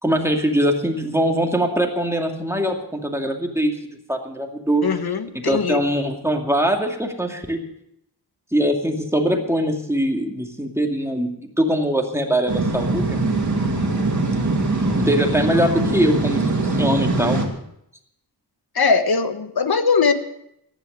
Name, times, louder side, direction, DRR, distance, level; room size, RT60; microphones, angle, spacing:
voice 1, 0.0-3.7 4.1-4.8 5.3-7.6 8.5-13.2 14.9-17.4, equal, 5° right, 2 dB, 2.4 m, -22 dB
voice 2, 4.8-5.8 18.7-20.1, left 5 dB, 65° left, 10 dB, 1.3 m, -20 dB
sound 1, 12.5-17.5, right 2 dB, 45° right, 2.5 m, -22 dB
14.5 x 11.0 x 6.5 m, 0.76 s
wide cardioid pair, 75°, 40 cm